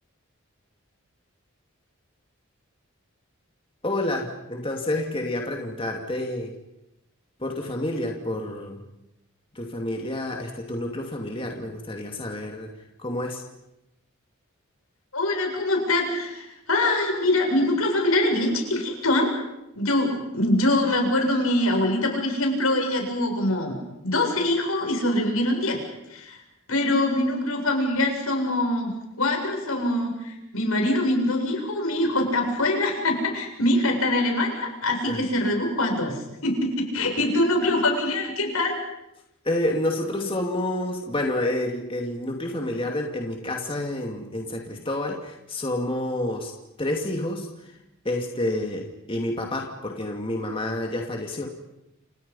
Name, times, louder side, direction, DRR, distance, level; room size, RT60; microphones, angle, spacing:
voice 1, 3.8-6.5 7.4-8.8 9.5-12.7 13.0-13.4 35.1-35.2 39.4-46.5 46.8-47.5 48.0-51.5, left 1 dB, 25° left, 1 dB, 2.6 m, -29 dB
voice 2, 15.1-19.3 19.7-23.8 24.0-25.8 26.1-26.4 26.7-38.7, left 1 dB, 85° left, 2 dB, 7.5 m, -24 dB
29.5 x 28.0 x 5.7 m, 0.88 s
head